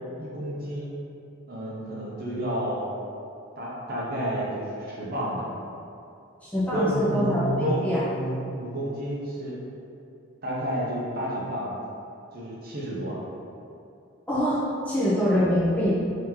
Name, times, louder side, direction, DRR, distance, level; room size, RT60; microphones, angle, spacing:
voice 1, 0.2-1.0 1.5-2.9 3.6-5.5 6.7-9.5 10.4-11.7 12.3-13.2, equal, 45° right, -6 dB, 0.7 m, -30 dB
voice 2, 6.4-8.0 14.3-16.0, equal, 5° left, -10 dB, 0.6 m, -24 dB
3.0 x 2.8 x 3.7 m, 2.6 s
head